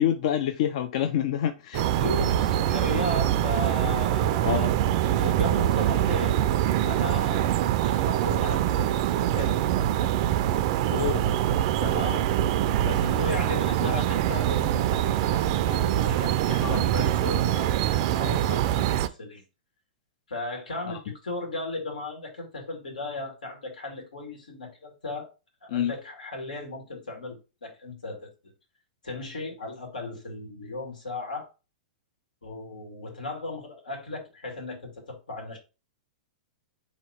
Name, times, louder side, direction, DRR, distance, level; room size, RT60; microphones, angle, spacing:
voice 1, 0.0-1.8 4.4-4.7 10.9-11.2 16.6-16.8 20.9-21.0 25.7-25.9, left 10 dB, 60° left, 0.4 m, -27 dB
voice 2, 1.7-4.5 5.1-6.4 6.8-9.6 11.8-12.3 12.8-19.4 20.3-25.3 25.6-28.3 29.0-31.5 32.4-35.6, left 2 dB, 90° left, 1.9 m, -36 dB
sound 1, 1.7-19.1, right 12 dB, 50° right, 0.4 m, -24 dB
3.9 x 2.9 x 4.2 m
hypercardioid pair, 125°, 4 cm